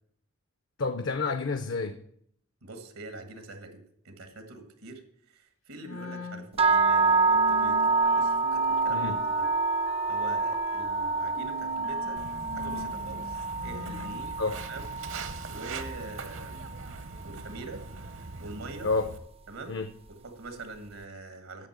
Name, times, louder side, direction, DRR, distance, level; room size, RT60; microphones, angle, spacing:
voice 1, 0.8-2.0 8.9-9.2 14.4-14.6 18.8-19.1 19.7-19.9, left 3 dB, 60° left, 0.5 m, -29 dB
voice 2, 2.6-5.0 5.3-9.5 10.1-12.2 12.5-14.3 14.7-14.9 15.5-16.7 17.2-17.8 18.4-18.9 19.5-19.8 20.1-21.7, right 2 dB, 85° right, 1.5 m, -44 dB
Wind instrument woodwind instrument, 5.8-14.1, left 3 dB, 75° left, 1.3 m, -42 dB
sound 1, 6.6-16.7, right 3 dB, 25° right, 0.4 m, -27 dB
Walk footsteps, 12.2-19.2, right 3 dB, 60° right, 0.8 m, -41 dB
8.6 x 6.6 x 8.0 m
head